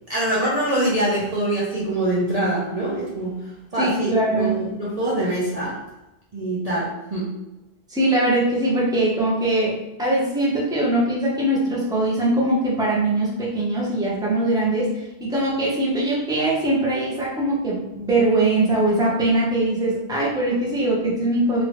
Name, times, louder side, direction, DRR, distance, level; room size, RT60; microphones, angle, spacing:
voice 1, 0.1-3.4 3.7-5.8 6.3-7.3, right 1 dB, 45° right, -6 dB, 0.6 m, -24 dB
voice 2, 3.8-4.5 7.9-21.6, right 1 dB, 5° right, -5 dB, 0.7 m, -21 dB
3.3 x 2.6 x 3.0 m, 0.97 s
omnidirectional pair, 1.1 m